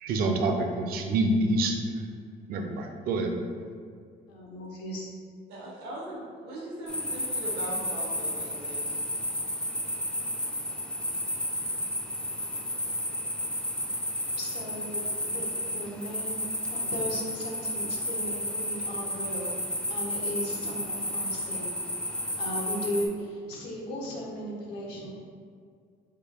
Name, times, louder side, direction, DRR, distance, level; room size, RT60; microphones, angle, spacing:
voice 1, 0.0-1.8 2.5-3.3, right 2 dB, 60° right, 4 dB, 0.4 m, -26 dB
voice 2, 4.3-5.1 5.9-6.0 14.4-16.4 16.6-19.5 19.9-21.7 22.4-25.1, equal, 90° left, -2 dB, 0.7 m, -36 dB
voice 3, 5.5-9.0, right 1 dB, 85° right, -3 dB, 0.9 m, -39 dB
sound 1, 6.9-23.1, left 1 dB, 5° left, 0.3 m, -32 dB
3.2 x 2.2 x 3.5 m, 2.1 s
cardioid pair, 110°, 17 cm